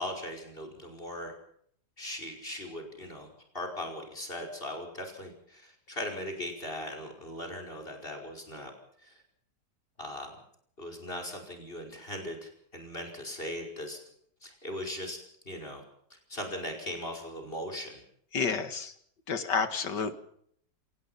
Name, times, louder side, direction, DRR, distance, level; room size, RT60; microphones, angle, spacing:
voice 1, 0.0-1.3 2.0-3.3 3.5-8.7 9.0-9.1 10.0-10.3 10.8-14.0 14.4-15.2 15.5-15.8 16.1-18.0, left 1 dB, 30° left, 2 dB, 5.4 m, -39 dB
voice 2, 18.3-18.9 19.3-20.1, left 5 dB, 90° left, 10 dB, 2.5 m, -30 dB
27.5 x 18.5 x 5.7 m, 0.64 s
omnidirectional pair, 1.8 m